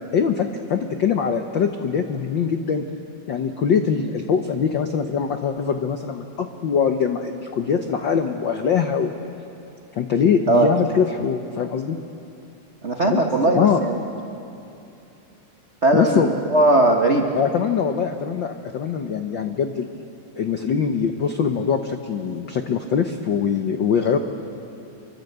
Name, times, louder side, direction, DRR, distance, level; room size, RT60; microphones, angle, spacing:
voice 1, 0.1-2.8 3.3-9.1 10.0-12.0 13.0-13.2 13.5-13.8 15.9-16.4 17.3-19.9 20.4-24.2, left 7 dB, 80° left, 6 dB, 1.0 m, -22 dB
voice 2, 12.8-14.0 15.8-17.3, right 2 dB, 85° right, 2 dB, 0.6 m, -18 dB
26.0 x 24.5 x 8.0 m, 2.7 s
omnidirectional pair, 3.5 m